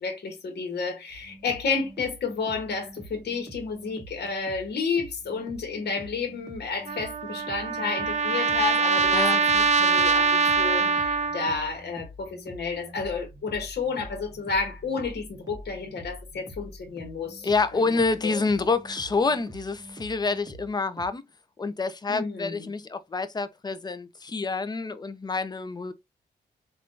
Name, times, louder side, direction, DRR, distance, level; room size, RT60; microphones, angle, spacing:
voice 1, 0.0-17.8 18.2-18.4 22.1-22.7, left 4 dB, 65° left, 1.1 m, -31 dB
sound 1, 1.1-21.1, equal, 20° right, 1.0 m, -46 dB
Trumpet, 6.9-11.7, right 5 dB, 40° right, 0.4 m, -23 dB
voice 2, 17.4-21.2 21.6-25.9, left 4 dB, 25° left, 0.5 m, -27 dB
3.5 x 2.4 x 2.5 m
cardioid pair, 70°, 18 cm